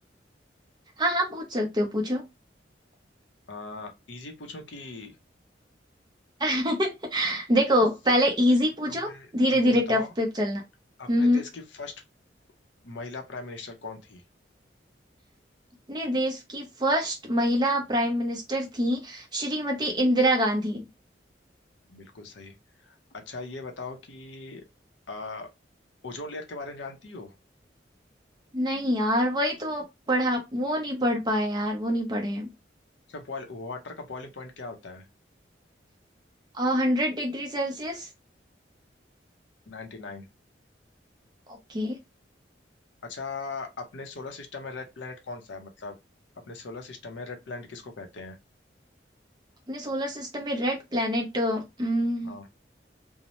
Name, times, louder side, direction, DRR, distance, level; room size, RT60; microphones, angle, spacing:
voice 1, 1.0-2.2 6.4-10.6 11.1-11.4 15.9-20.9 28.5-32.5 36.5-38.1 41.7-42.0 49.7-52.4, equal, 25° right, 0.7 m, -25 dB
voice 2, 3.5-5.1 8.1-8.2 8.8-9.3 9.6-10.1 11.0-12.0 12.8-14.2 21.9-22.5 22.8-24.7 25.1-25.5 26.0-27.3 33.1-35.0 39.7-40.3 43.1-46.0 46.5-48.4 52.2-52.5, left 3 dB, 85° left, 0.7 m, -39 dB
2.7 x 2.1 x 2.9 m
head